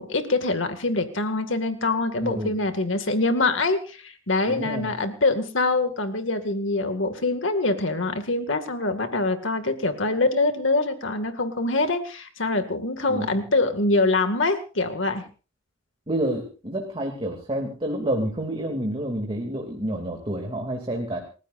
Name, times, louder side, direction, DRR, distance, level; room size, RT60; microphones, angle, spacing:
voice 1, 0.0-15.2, left 2 dB, 70° left, 7 dB, 2.2 m, -24 dB
voice 2, 2.2-2.6 4.5-4.9 13.1-13.3 16.1-21.2, right 1 dB, 30° right, 2 dB, 2.7 m, -29 dB
29.0 x 15.5 x 2.6 m, 0.35 s
head